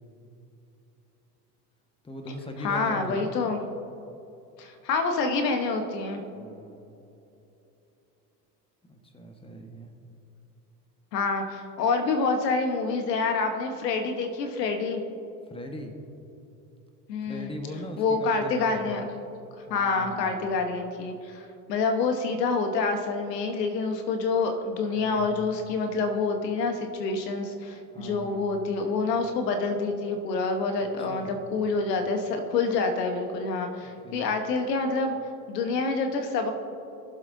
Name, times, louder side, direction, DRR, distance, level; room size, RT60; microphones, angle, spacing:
voice 1, 2.0-3.4 6.3-6.8 8.9-9.9 15.5-15.9 17.2-19.1 19.7-20.5 25.0-25.5 27.9-28.5 30.8-31.5 33.8-34.3, equal, 10° left, 4 dB, 1.4 m, -40 dB
voice 2, 2.6-3.6 4.6-6.2 11.1-15.0 17.1-17.5 18.0-19.1 19.7-35.2 35.5-36.5, left 4 dB, 80° left, 5 dB, 1.3 m, -27 dB
21.0 x 7.6 x 2.7 m, 2.8 s
hypercardioid pair, 80°, 48 cm